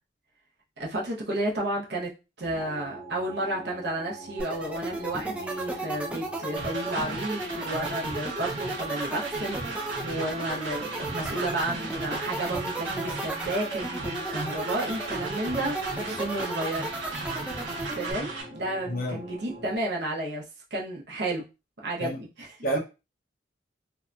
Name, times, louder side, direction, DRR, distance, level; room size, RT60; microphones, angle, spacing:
voice 1, 0.8-2.1 2.4-16.9 17.9-20.4 20.7-21.4 21.8-22.5, right 1 dB, 55° right, 0.8 m, -32 dB
sound 1, 2.4-19.8, right 1 dB, 30° right, 1.1 m, -43 dB
sound 2, 4.4-18.1, right 2 dB, 5° right, 0.4 m, -34 dB
sound 3, 6.6-18.4, right 3 dB, 80° right, 1.1 m, -36 dB
voice 2, 18.9-19.2 22.0-22.2 22.6-22.8, right 1 dB, 45° left, 0.6 m, -28 dB
2.7 x 2.5 x 2.2 m
head